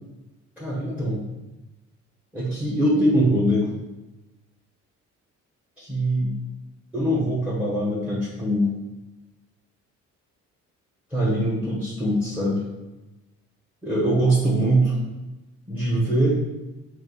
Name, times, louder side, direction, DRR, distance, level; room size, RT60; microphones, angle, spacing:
voice 1, 0.6-1.2 2.3-3.7 5.8-6.3 6.9-8.7 11.1-12.6 13.8-15.0 15.7-16.4, right 1 dB, 5° right, -6 dB, 1.1 m, -22 dB
3.8 x 2.7 x 4.0 m, 1.1 s
cardioid pair, 90°, 30 cm